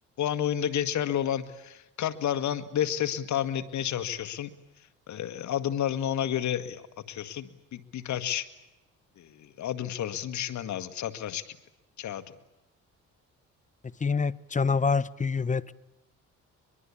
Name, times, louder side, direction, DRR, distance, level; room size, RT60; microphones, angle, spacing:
voice 1, 0.2-4.5 5.1-8.4 9.2-11.5 12.0-12.2, left 10 dB, 70° left, 10 dB, 1.9 m, -31 dB
voice 2, 14.0-15.7, left 5 dB, 25° left, 19 dB, 0.9 m, -26 dB
23.0 x 22.5 x 8.6 m, 0.94 s
cardioid pair, 90°, 30 cm